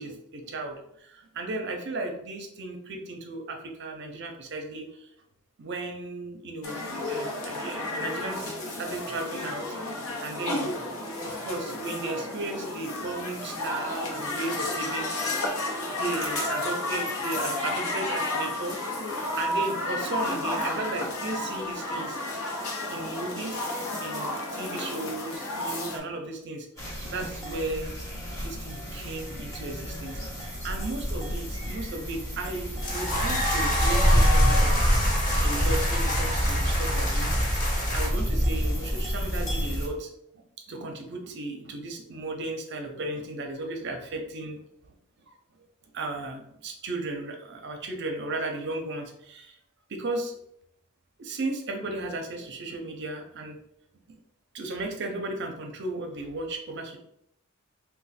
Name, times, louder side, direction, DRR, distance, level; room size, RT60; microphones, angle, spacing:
voice 1, 0.0-5.1 5.6-9.7 10.2-10.8 11.2-15.5 15.8-18.8 19.1-22.2 22.9-23.7 24.0-27.9 28.4-35.0 35.3-37.5 37.9-40.1 40.3-44.6 45.3-45.4 45.9-49.6 49.9-50.4 51.2-53.6 54.1-54.2 54.5-57.0, right 2 dB, 55° right, 4 dB, 0.6 m, -35 dB
sound 1, 6.6-26.0, left 2 dB, 70° left, 0.8 m, -32 dB
sound 2, 26.8-39.9, equal, 15° left, 0.8 m, -27 dB
sound 3, 32.8-38.1, left 1 dB, 40° left, 1.1 m, -29 dB
3.1 x 2.2 x 4.1 m, 0.74 s
head